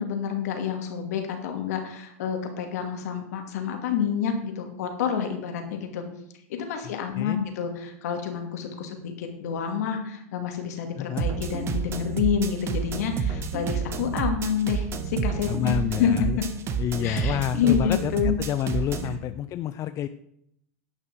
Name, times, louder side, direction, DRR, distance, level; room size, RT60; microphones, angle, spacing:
voice 1, 0.0-6.0 6.5-16.1 17.0-18.3, left 8 dB, 75° left, 4 dB, 2.4 m, -28 dB
voice 2, 6.8-7.4 11.0-11.3 15.5-16.4 16.8-20.1, left 11 dB, 35° left, 12 dB, 0.5 m, -29 dB
sound 1, 11.2-19.2, right 6 dB, 30° right, 1.1 m, -29 dB
11.0 x 5.9 x 6.3 m, 0.74 s
hypercardioid pair, 115°, 9 cm